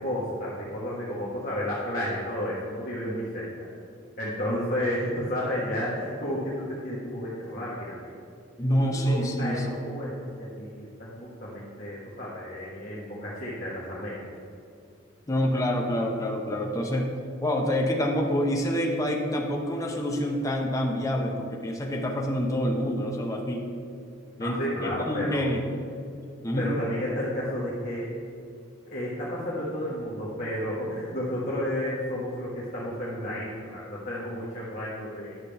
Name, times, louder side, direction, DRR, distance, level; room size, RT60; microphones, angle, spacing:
voice 1, 0.0-3.7 4.2-8.0 8.7-14.2 24.4-25.5 26.6-28.1 28.9-35.3, equal, 45° left, -8 dB, 1.3 m, -32 dB
voice 2, 8.6-9.8 15.3-17.1 17.4-23.7 24.4-25.6 26.4-26.7, equal, 15° left, 0 dB, 0.6 m, -27 dB
11.0 x 6.6 x 3.4 m, 2.4 s
head